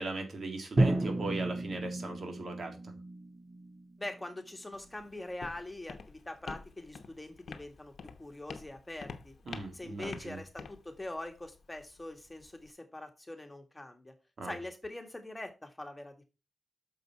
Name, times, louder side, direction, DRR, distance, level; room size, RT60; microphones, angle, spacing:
voice 1, 0.0-2.9 9.5-10.4 14.4-14.6, right 2 dB, 70° right, 1.9 m, -38 dB
Drum, 0.8-4.8, right 2 dB, 40° right, 2.1 m, -33 dB
voice 2, 4.0-7.9 8.2-9.3 9.7-14.1 14.4-16.2, left 1 dB, 20° left, 1.7 m, -43 dB
Walk footsteps, 4.7-12.7, left 5 dB, 80° left, 0.8 m, -49 dB
6.6 x 5.2 x 4.7 m
cardioid pair, 65°, 0 cm